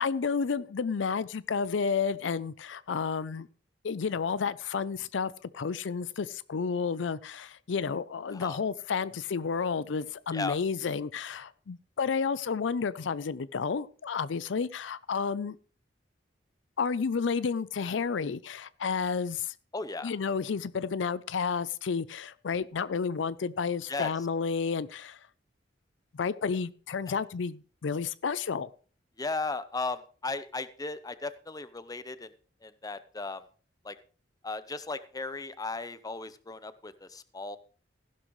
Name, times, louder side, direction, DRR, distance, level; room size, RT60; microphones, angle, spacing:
voice 1, 0.0-3.5 3.8-15.6 16.8-19.5 20.0-25.2 26.1-28.7, left 5 dB, 75° left, 17 dB, 0.5 m, -31 dB
voice 2, 19.7-20.1 23.9-24.1 27.1-27.2 29.2-32.3 32.6-33.4 33.8-34.0 34.4-37.6, left 3 dB, 20° left, 14 dB, 0.7 m, -36 dB
15.0 x 11.5 x 3.1 m, 0.40 s
head